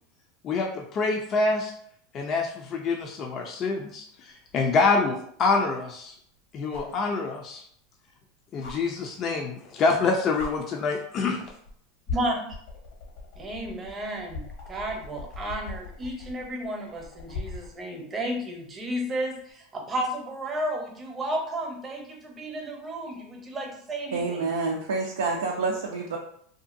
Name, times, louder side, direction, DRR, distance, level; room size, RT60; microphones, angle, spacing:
voice 1, 0.4-1.7 2.1-6.1 6.5-7.6 8.5-11.4, left 4 dB, 40° left, 2 dB, 0.4 m, -26 dB
sound 1, 4.5-4.6 6.7-7.0 8.6-8.7 9.9-10.0 10.4-10.5 11.4-11.7 12.1-17.7 19.4-19.5, left 3 dB, 75° left, 0.9 m, -38 dB
voice 2, 12.1-12.5 13.4-24.5, right 1 dB, 25° right, 2 dB, 0.8 m, -32 dB
voice 3, 24.1-26.2, right 4 dB, 85° right, -1 dB, 0.4 m, -28 dB
2.7 x 2.5 x 2.5 m, 0.64 s
hypercardioid pair, 100°, 0 cm